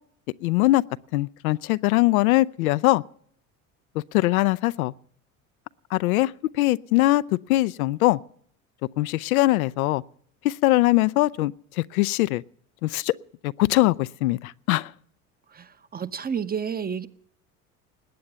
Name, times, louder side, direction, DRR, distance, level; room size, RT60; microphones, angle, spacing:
voice 1, 0.4-0.8 1.1-3.0 4.1-4.9 5.9-6.3 6.6-7.2 7.5-8.2 9.0-10.0 10.4-12.4 12.8-13.1 13.4-14.9, left 18 dB, 75° left, 0.5 m, -21 dB
voice 2, 15.5-17.1, right 7 dB, 20° right, 0.8 m, -30 dB
20.0 x 8.6 x 6.8 m
hypercardioid pair, 70°, 43 cm